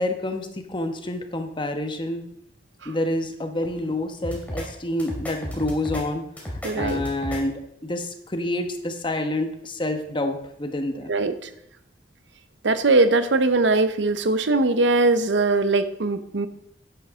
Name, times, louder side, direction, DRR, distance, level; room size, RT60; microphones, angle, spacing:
voice 1, 0.0-2.2 2.8-6.2 6.5-11.1, left 1 dB, 25° left, 6 dB, 1.1 m, -28 dB
sound 1, 4.2-4.7 5.0-6.0 6.4-7.4, left 1 dB, 10° left, 2.6 m, -32 dB
voice 2, 6.6-7.0 11.1-11.5 12.6-16.5, right 3 dB, 80° right, 11 dB, 0.9 m, -21 dB
10.5 x 10.0 x 3.7 m, 0.75 s
head